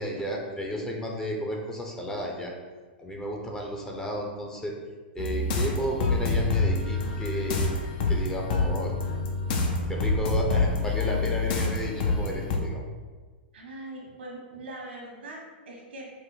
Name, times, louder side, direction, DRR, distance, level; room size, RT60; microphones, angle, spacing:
voice 1, 0.0-2.5 3.0-4.7 5.1-7.7 8.1-8.9 9.9-12.8, equal, 10° left, 0 dB, 0.6 m, -32 dB
sound 1, 5.2-12.6, left 3 dB, 55° left, 0.7 m, -27 dB
voice 2, 13.5-16.1, right 1 dB, 85° right, -2 dB, 1.3 m, -41 dB
5.2 x 2.1 x 3.9 m, 1.3 s
hypercardioid pair, 120°, 6 cm